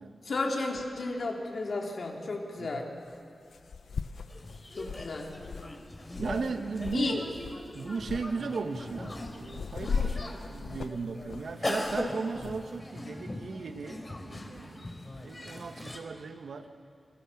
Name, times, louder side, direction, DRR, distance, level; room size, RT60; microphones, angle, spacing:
voice 1, 0.3-2.9 4.8-5.3 6.9-7.2, left 3 dB, 65° left, 0 dB, 3.5 m, -33 dB
sound 1, 1.2-1.3 3.1-3.2 3.5-7.1 7.3-7.6 8.0-8.3 8.8-12.6, left 5 dB, 85° left, 0.6 m, -38 dB
sound 2, 4.3-16.0, left 1 dB, 30° left, 3.5 m, -40 dB
voice 2, 6.2-7.3 7.7-16.8, right 4 dB, 80° right, 7 dB, 1.5 m, -37 dB
29.0 x 21.5 x 7.3 m, 2.4 s
wide cardioid pair, 75°, 0 cm